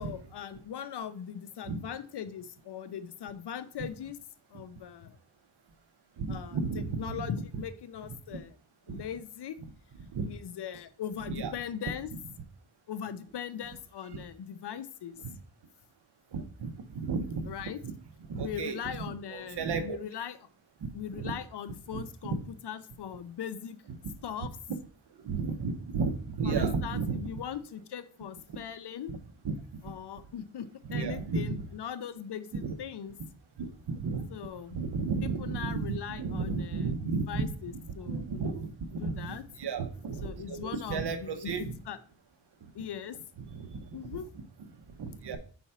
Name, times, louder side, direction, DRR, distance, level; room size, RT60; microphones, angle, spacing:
voice 1, 0.0-4.2 4.5-5.2 6.3-8.6 8.9-9.6 10.3-12.1 12.9-15.2 17.5-17.8 18.4-20.5 20.9-23.8 24.2-24.5 26.4-29.1 29.8-33.1 34.3-34.8 35.2-38.6 38.9-39.5 40.2-42.0 42.7-43.2 43.9-44.3, left 8 dB, 65° left, 12 dB, 0.7 m, -40 dB
voice 2, 6.2-7.3 8.9-9.0 10.1-10.3 11.4-11.5 14.1-14.2 15.2-15.3 16.3-17.5 17.8-17.9 18.3-18.8 19.3-20.0 21.2-21.3 21.9-22.4 25.2-27.2 29.1-29.2 29.4-29.6 30.9-31.5 32.6-32.7 33.6-34.2 34.7-37.5 38.1-41.7 43.5-43.8 45.0-45.4, right 4 dB, 65° right, 8 dB, 0.9 m, -33 dB
4.4 x 4.0 x 5.6 m, 0.42 s
wide cardioid pair, 110°, 43 cm